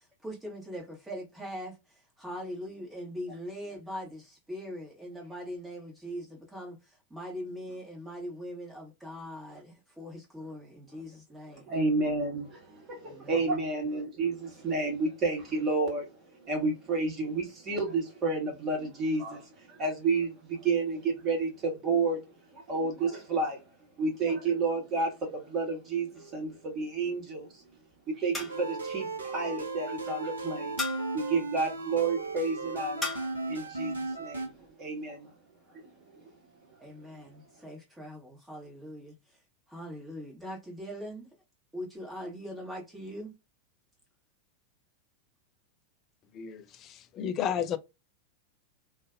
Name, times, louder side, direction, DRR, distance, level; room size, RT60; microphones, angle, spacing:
voice 1, 0.0-11.7 13.1-13.5 36.8-39.2 39.7-41.3 41.7-43.3, equal, 10° right, 1.1 m, -41 dB
voice 2, 11.5-22.2 22.5-23.6 24.0-27.6 28.1-30.8 31.1-35.3 35.7-36.2, right 3 dB, 30° right, 1.3 m, -31 dB
sound 1, 26.1-26.7 28.3-28.9 30.8-31.3 33.0-33.5, left 3 dB, 10° left, 0.7 m, -37 dB
sound 2, 28.5-34.5, right 3 dB, 75° right, 0.6 m, -36 dB
voice 3, 46.3-47.8, left 9 dB, 30° left, 0.3 m, -32 dB
2.5 x 2.4 x 2.3 m
figure-of-eight pair, 90°, 0 cm